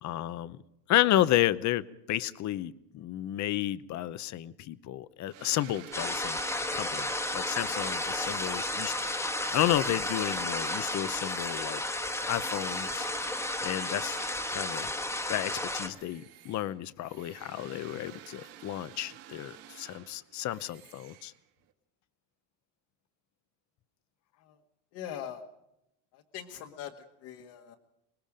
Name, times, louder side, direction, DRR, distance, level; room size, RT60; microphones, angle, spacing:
voice 1, 0.0-0.6 0.9-6.4 6.7-9.1 9.4-11.8 12.3-13.1 13.6-14.2 14.5-14.9 15.3-21.3, left 13 dB, 40° left, 16 dB, 0.8 m, -31 dB
sound 1, 5.3-15.3 15.7-21.7, right 12 dB, 60° right, 2.5 m, -50 dB
sound 2, 5.9-15.9, left 1 dB, 5° left, 1.3 m, -33 dB
voice 2, 24.9-25.4 26.1-26.9 27.2-27.8, left 10 dB, 70° left, 1 dB, 2.0 m, -41 dB
24.5 x 21.0 x 5.1 m, 0.82 s
cardioid pair, 170°, 42 cm